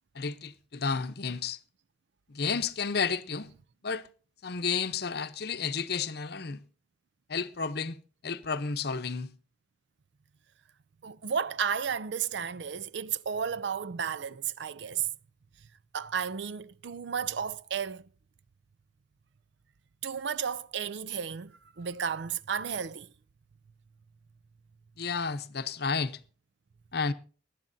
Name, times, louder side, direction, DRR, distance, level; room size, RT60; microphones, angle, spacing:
voice 1, 0.1-1.6 2.3-3.5 3.8-4.1 4.4-6.6 7.3-8.0 8.2-9.3 25.0-26.2 26.9-27.1, left 5 dB, 60° left, 0.8 m, -31 dB
voice 2, 11.0-15.1 15.9-18.1 20.0-23.1, right 7 dB, 65° right, 0.5 m, -33 dB
19.5 x 12.0 x 2.7 m
head